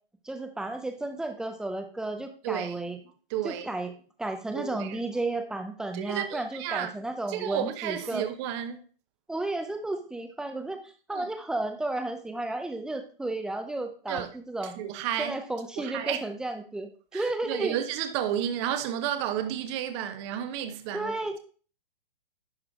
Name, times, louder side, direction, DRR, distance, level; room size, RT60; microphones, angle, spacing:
voice 1, 0.2-3.0 3.4-3.9 4.2-8.2 9.3-10.8 11.1-14.8 15.2-17.8 20.9-21.4, right 2 dB, ahead, 0.5 m, -33 dB
voice 2, 2.4-2.8 3.3-3.7 4.5-5.0 5.9-6.9 7.3-8.8 11.1-11.3 14.1-14.3 14.8-15.4 15.8-16.2 17.1-21.1, right 10 dB, 30° right, 0.8 m, -32 dB
11.0 x 4.9 x 3.6 m
hypercardioid pair, 135°, 29 cm